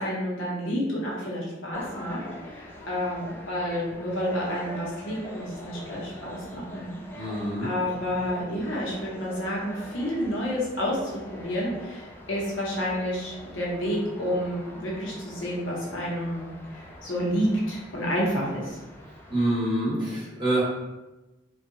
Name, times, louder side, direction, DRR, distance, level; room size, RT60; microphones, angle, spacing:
voice 1, 0.0-7.3 7.6-16.4 16.7-18.8, equal, 70° left, -4 dB, 0.8 m, -30 dB
sound 1, 1.7-19.5, equal, 10° left, 0.4 m, -44 dB
voice 2, 7.1-7.7 19.3-20.6, right 1 dB, 25° right, -9 dB, 1.2 m, -26 dB
2.6 x 2.3 x 2.6 m, 1.0 s
head